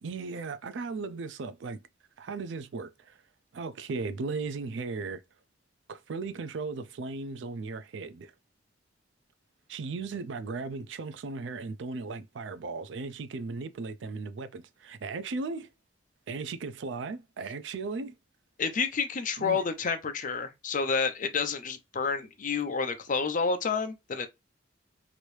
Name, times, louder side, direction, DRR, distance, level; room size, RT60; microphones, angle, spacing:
voice 1, 0.0-1.8 2.2-3.2 3.5-5.2 5.9-8.3 9.7-15.7 16.3-18.2 19.4-19.6, right 4 dB, 70° right, 0.4 m, -36 dB
voice 2, 18.6-24.3, left 5 dB, 45° left, 0.5 m, -29 dB
3.0 x 2.6 x 3.1 m
head